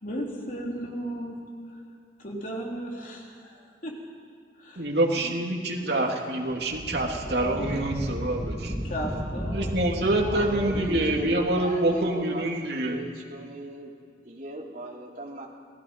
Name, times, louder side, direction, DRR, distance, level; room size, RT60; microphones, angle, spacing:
voice 1, 0.0-1.8 2.2-4.0 4.6-5.3 6.0-6.2 7.2-7.9 8.8-10.4, equal, 50° left, -1 dB, 3.4 m, -36 dB
voice 2, 4.8-8.7 9.5-13.0, right 1 dB, 70° right, 1 dB, 2.7 m, -26 dB
Wind, 6.5-11.3, equal, 15° right, 3.3 m, -34 dB
voice 3, 10.3-13.9 14.2-15.5, right 1 dB, 50° right, -2 dB, 3.2 m, -38 dB
28.0 x 18.5 x 5.3 m, 2.2 s
head